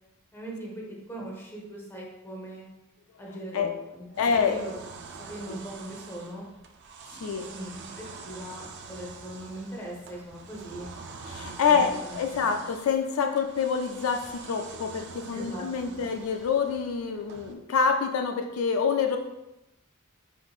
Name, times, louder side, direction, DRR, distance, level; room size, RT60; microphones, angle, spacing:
voice 1, 0.3-2.6 3.2-4.0 4.4-4.8 5.3-6.4 7.1-7.9 8.2-10.9 11.7-12.7 15.3-16.0, right 1 dB, 10° left, -3 dB, 0.9 m, -40 dB
sound 1, 4.1-17.5, right 4 dB, 55° right, 0.4 m, -45 dB
voice 2, 4.2-4.6 5.5-5.6 7.2-7.5 11.3-19.2, left 6 dB, 70° left, 5 dB, 0.4 m, -26 dB
5.1 x 3.8 x 2.4 m, 0.94 s
head